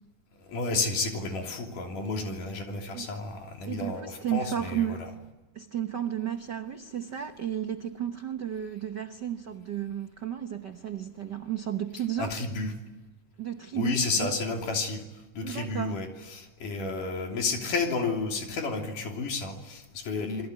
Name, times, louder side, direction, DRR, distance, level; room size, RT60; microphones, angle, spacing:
voice 1, 0.5-5.0 12.2-12.7 13.7-15.0 15.3-20.5, left 3 dB, 75° left, 2 dB, 4.7 m, -31 dB
voice 2, 3.7-5.0 5.5-12.3 13.4-14.3 15.4-16.0, right 10 dB, 65° right, 6 dB, 1.0 m, -33 dB
28.0 x 21.5 x 9.6 m, 1.1 s
omnidirectional pair, 3.7 m